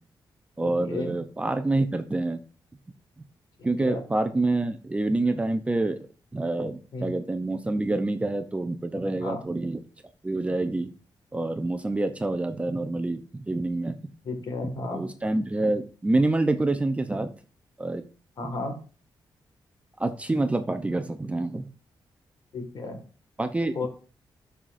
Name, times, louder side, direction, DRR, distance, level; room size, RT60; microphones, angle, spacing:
voice 1, 0.6-2.4 3.6-6.0 6.3-9.8 10.2-10.9 11.3-14.0 14.9-17.3 17.8-18.0 20.0-21.6 23.4-23.9, right 2 dB, 15° right, 8 dB, 0.6 m, -27 dB
voice 2, 3.6-4.0 6.9-7.2 9.2-9.4 14.2-15.0 18.4-18.8 22.5-23.0 23.7-23.9, left 3 dB, 55° left, 5 dB, 1.8 m, -33 dB
13.0 x 5.7 x 2.6 m, 0.37 s
wide cardioid pair, 130°, 8 cm